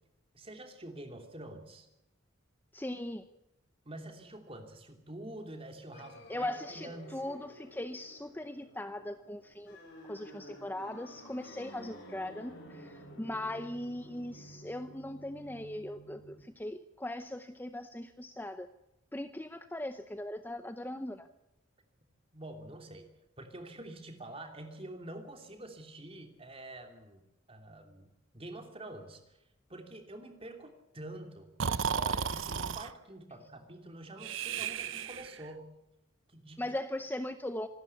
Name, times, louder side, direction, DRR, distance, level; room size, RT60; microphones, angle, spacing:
voice 1, 0.3-1.9 3.8-7.2 22.3-27.2 27.5-28.1 28.3-29.2 29.7-35.7 36.3-36.8, right 1 dB, 30° right, 5 dB, 2.9 m, -47 dB
voice 2, 2.7-3.2 6.3-9.8 10.1-18.7 19.1-21.3 36.6-37.7, left 1 dB, 10° left, 10 dB, 0.7 m, -39 dB
sound 1, 5.9-16.4, equal, 60° left, 7.6 m, -52 dB
Breathing, 31.6-32.9 34.2-35.5, right 6 dB, 65° right, 0.8 m, -34 dB
26.5 x 12.5 x 8.4 m, 0.92 s
head